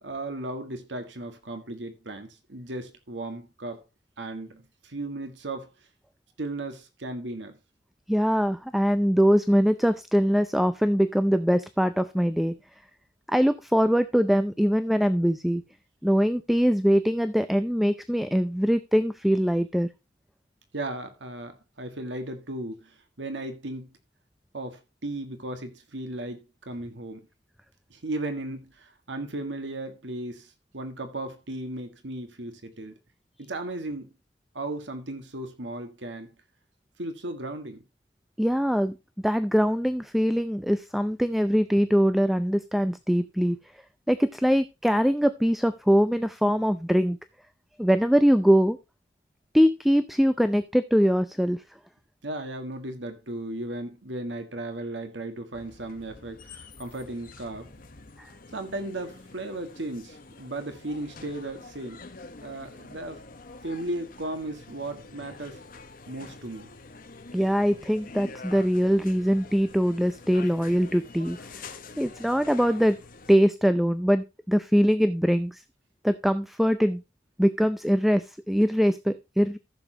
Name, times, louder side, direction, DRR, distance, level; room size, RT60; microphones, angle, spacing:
voice 1, 0.0-3.8 4.2-5.7 6.4-7.6 20.7-23.9 24.5-27.3 27.9-32.9 33.5-34.1 34.5-36.3 37.0-37.8 52.2-57.7 58.5-62.1 62.4-63.2 63.6-65.6 66.1-66.7, right 2 dB, 80° right, 1.7 m, -36 dB
voice 2, 8.1-12.5 13.3-15.6 16.0-19.9 38.4-38.9 39.2-43.6 44.1-47.2 47.8-48.8 49.5-51.6 58.2-58.3 67.3-73.0 73.3-75.6 76.0-77.0 77.4-79.6, equal, ahead, 0.5 m, -22 dB
sound 1, 55.5-73.3, left 3 dB, 50° left, 1.3 m, -46 dB
14.5 x 7.1 x 2.9 m
head